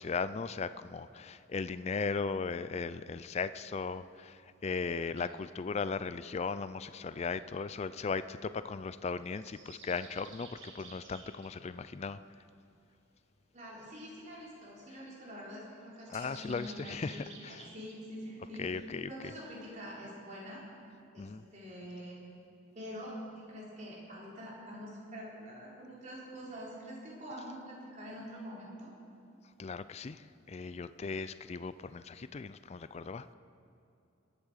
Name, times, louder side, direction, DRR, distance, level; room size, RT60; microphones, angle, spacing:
voice 1, 0.0-12.2 16.1-17.6 18.6-19.1 21.2-21.4 29.6-33.3, left 4 dB, 35° left, 14 dB, 0.4 m, -37 dB
sound 1, 5.1-5.3 6.8-8.1 9.2-11.5 15.9-18.0, right 4 dB, 75° right, 2.1 m, -54 dB
voice 2, 13.5-18.7 19.1-20.6 21.1-22.2 22.7-29.0, equal, 40° right, -5 dB, 4.2 m, -45 dB
sound 2, 16.1-18.1, equal, 15° left, 2.8 m, -58 dB
22.0 x 8.5 x 6.5 m, 2.7 s
head